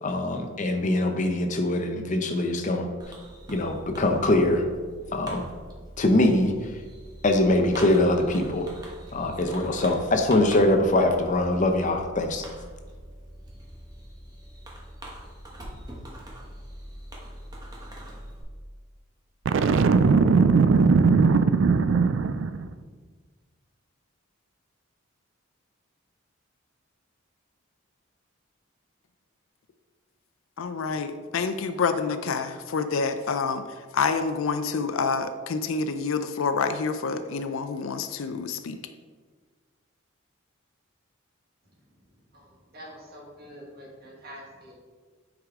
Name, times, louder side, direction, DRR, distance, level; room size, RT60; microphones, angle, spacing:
voice 1, 0.0-2.9 3.5-4.6 5.1-5.4 6.0-6.5 7.2-8.7 9.1-12.4, left 1 dB, 35° left, 5 dB, 0.7 m, -23 dB
Fireworks, 3.0-18.4, right 1 dB, 20° right, 1.2 m, -43 dB
Boom, 19.5-22.7, right 4 dB, 65° right, 0.4 m, -19 dB
voice 2, 30.6-33.6 33.9-38.8, left 5 dB, 75° left, 9 dB, 0.5 m, -27 dB
voice 3, 42.3-44.7, equal, 50° right, -2 dB, 1.7 m, -46 dB
9.1 x 4.9 x 3.6 m, 1.5 s
head